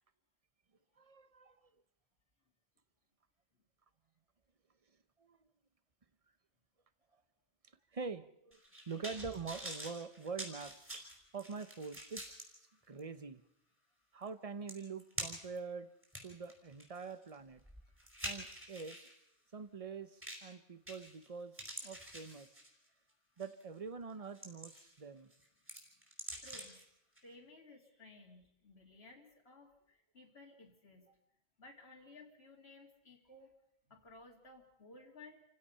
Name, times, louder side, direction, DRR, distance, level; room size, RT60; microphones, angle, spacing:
voice 1, 1.0-1.6 5.2-5.4 7.9-8.6 8.9-11.1 11.3-12.5 12.9-13.4 14.1-15.9 16.2-17.6 18.2-19.0 19.5-22.5 23.4-25.3, right 5 dB, 35° right, 13 dB, 0.9 m, -45 dB
sound 1, 8.5-12.4 13.0-13.1 14.3-14.4 14.7-15.6 16.0-19.1 20.2-20.5 20.9-21.3 21.5-22.9 23.4-23.6 24.1-25.0 25.3-26.8 27.2-27.3, equal, 10° right, 4.8 m, -46 dB
voice 2, 26.4-26.8 27.2-31.2 31.6-33.5 33.9-35.4, left 2 dB, 85° left, 1 dB, 2.8 m, -57 dB
28.0 x 16.5 x 5.7 m, 0.77 s
omnidirectional pair, 1.1 m